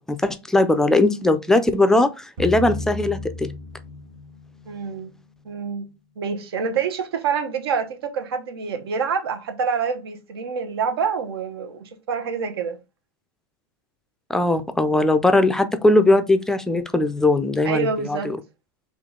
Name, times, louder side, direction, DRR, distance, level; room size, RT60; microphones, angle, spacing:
voice 1, 0.1-3.5 14.3-18.4, left 2 dB, 5° left, 0.3 m, -19 dB
sound 1, 2.4-5.5, left 1 dB, 65° right, 1.6 m, -34 dB
voice 2, 4.7-5.2 5.4-5.9 6.2-12.8 17.6-18.3, right 6 dB, 85° right, 1.0 m, -26 dB
3.7 x 3.1 x 3.6 m
supercardioid pair, 145°, 12 cm